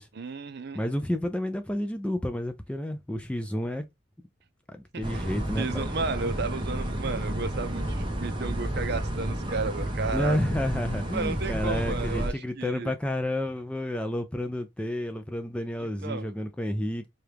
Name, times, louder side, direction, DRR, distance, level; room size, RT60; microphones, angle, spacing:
voice 1, 0.1-0.8 4.9-5.3 5.6-10.4 11.1-12.9 16.0-16.3, right 4 dB, 50° right, 0.6 m, -33 dB
voice 2, 0.7-3.8 4.7-5.9 10.1-17.1, left 1 dB, 5° left, 0.3 m, -30 dB
sound 1, 5.0-12.3, right 1 dB, 25° right, 0.9 m, -31 dB
4.7 x 2.4 x 3.2 m
head